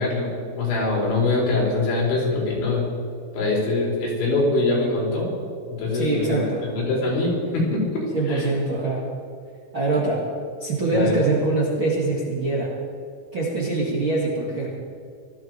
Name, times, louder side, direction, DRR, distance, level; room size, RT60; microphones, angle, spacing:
voice 1, 0.0-2.8 3.3-5.3 5.8-8.4 10.9-11.1, left 2 dB, 70° left, -3 dB, 6.6 m, -23 dB
voice 2, 5.9-6.7 8.1-9.1 9.7-10.3 10.6-12.7 13.3-14.7, right 2 dB, 40° right, -6 dB, 2.0 m, -23 dB
19.5 x 14.0 x 4.7 m, 2.3 s
omnidirectional pair, 5.5 m